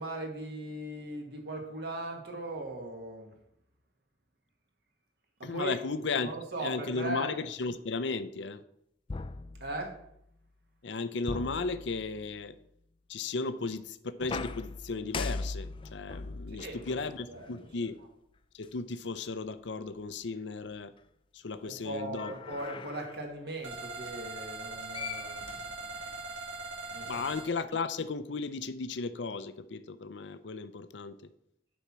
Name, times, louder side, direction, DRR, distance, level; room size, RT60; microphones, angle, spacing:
voice 1, 0.0-3.3 5.4-5.8 6.2-7.3 9.6-10.0 16.5-17.9 21.6-25.4 26.9-27.1, right 1 dB, 60° right, 2 dB, 1.5 m, -39 dB
voice 2, 5.4-6.3 6.6-8.6 10.8-12.6 13.1-18.0 18.5-20.9 21.3-22.3 27.0-31.2, left 4 dB, 75° left, 13 dB, 0.6 m, -35 dB
sound 1, 9.1-10.2 11.3-12.4 14.2-17.8 18.6-18.7 22.0-23.3 24.6-24.7 24.9-26.2, left 3 dB, 25° left, 0.3 m, -40 dB
sound 2, 23.6-27.5, right 3 dB, 75° right, 2.1 m, -41 dB
10.0 x 4.3 x 6.0 m, 0.76 s
head